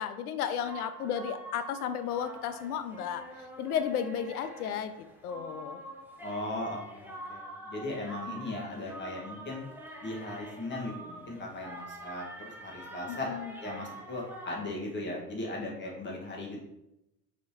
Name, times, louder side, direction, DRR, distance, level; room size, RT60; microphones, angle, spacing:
voice 1, 0.0-5.8 8.5-8.6 13.1-13.5, left 8 dB, 65° left, 11 dB, 0.6 m, -34 dB
sound 1, 0.6-14.7, right 1 dB, 5° right, 0.6 m, -46 dB
voice 2, 6.2-9.6 10.0-13.3 13.6-16.6, left 1 dB, 25° left, -2 dB, 1.5 m, -38 dB
4.2 x 3.5 x 2.9 m, 0.86 s
figure-of-eight pair, 65°, 48 cm